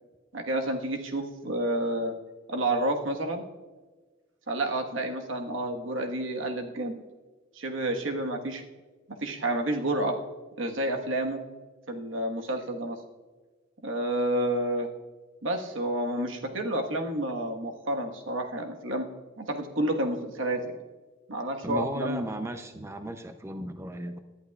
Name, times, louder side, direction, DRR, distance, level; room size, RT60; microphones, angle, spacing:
voice 1, 0.3-2.1 2.5-3.4 4.5-7.0 7.5-8.6 9.2-10.2 10.6-11.4 11.9-13.0 13.8-14.9 15.4-19.1 19.4-20.6 21.3-22.3, right 1 dB, 70° right, 3 dB, 1.4 m, -29 dB
voice 2, 21.6-24.2, right 1 dB, 15° right, 7 dB, 0.5 m, -35 dB
19.0 x 11.5 x 2.3 m, 1.3 s
head